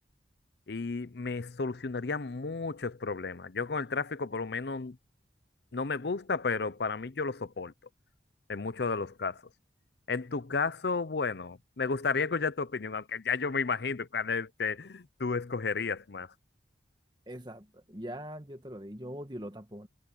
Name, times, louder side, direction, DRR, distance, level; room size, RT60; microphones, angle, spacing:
voice 1, 0.7-5.0 5.7-7.7 8.5-9.4 10.1-16.3, left 4 dB, 65° left, 0.7 m, -32 dB
voice 2, 17.3-19.9, equal, 25° right, 1.7 m, -42 dB
head